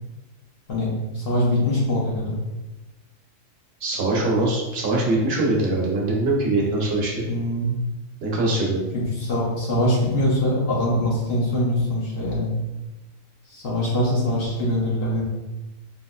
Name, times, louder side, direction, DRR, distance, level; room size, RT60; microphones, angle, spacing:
voice 1, 0.7-2.4 7.3-7.8 8.9-12.5 13.5-15.2, left 1 dB, 55° left, -5 dB, 0.8 m, -23 dB
voice 2, 3.8-7.1 8.2-8.8, right 2 dB, 55° right, -3 dB, 0.9 m, -22 dB
3.7 x 2.5 x 2.3 m, 1.1 s
omnidirectional pair, 1.4 m